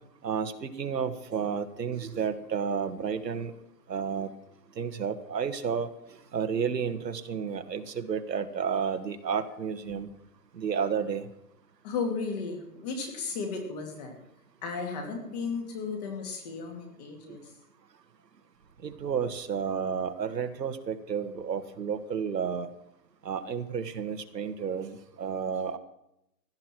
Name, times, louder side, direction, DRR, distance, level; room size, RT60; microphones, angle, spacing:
voice 1, 0.2-3.5 3.9-4.3 4.8-5.9 6.3-10.1 10.5-11.3 18.8-22.7 23.2-25.8, right 6 dB, 85° right, 8 dB, 1.8 m, -31 dB
voice 2, 11.8-14.1 14.6-17.5, left 4 dB, 25° left, 3 dB, 2.6 m, -34 dB
16.5 x 12.5 x 4.6 m, 0.83 s
hypercardioid pair, 170°, 48 cm